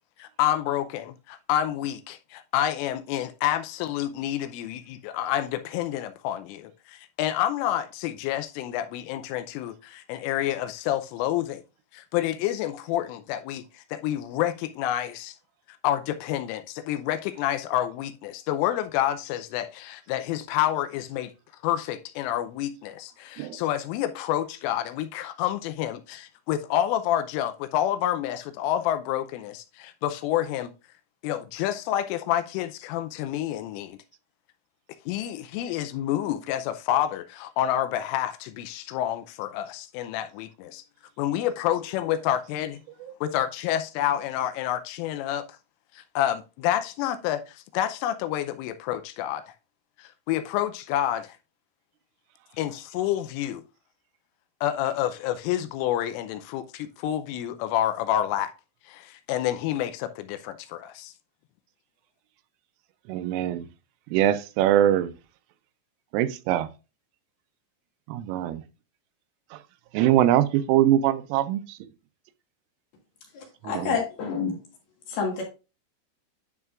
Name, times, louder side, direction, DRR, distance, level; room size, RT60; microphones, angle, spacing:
voice 1, 0.2-11.6 11.9-15.4 15.8-21.3 21.6-30.7 31.2-34.0 35.1-40.8 41.2-42.8 43.2-45.5 46.0-49.4 50.0-51.4 52.6-53.6 54.6-58.5 58.9-61.1, left 12 dB, 85° left, 3.1 m, -28 dB
voice 2, 63.1-63.7 64.1-65.1 66.1-66.7 68.1-68.6 69.9-71.6 73.7-73.9, right 12 dB, 85° right, 3.1 m, -22 dB
voice 3, 73.3-74.6 75.1-75.4, left 5 dB, 65° left, 2.9 m, -28 dB
10.5 x 5.5 x 2.4 m
omnidirectional pair, 5.8 m